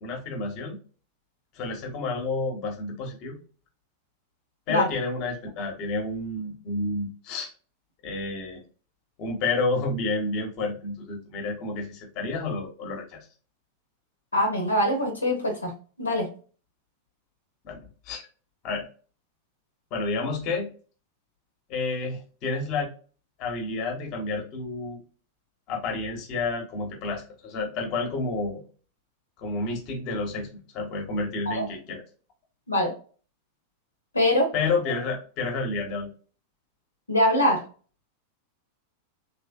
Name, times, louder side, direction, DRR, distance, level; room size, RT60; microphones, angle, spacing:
voice 1, 0.0-0.8 1.5-3.4 4.7-7.5 8.0-8.6 9.2-13.3 17.6-17.8 18.0-18.2 18.6-18.9 19.9-20.7 21.7-22.9 23.4-25.0 25.7-28.6 29.4-32.0 34.5-36.1, left 3 dB, 40° left, 2 dB, 1.1 m, -30 dB
voice 2, 14.3-15.7 16.0-16.3 31.5-31.6 32.7-32.9 34.1-34.5 37.1-37.6, left 1 dB, 80° left, 1 dB, 0.9 m, -23 dB
3.2 x 3.1 x 2.2 m, 0.38 s
figure-of-eight pair, 90°, 0 cm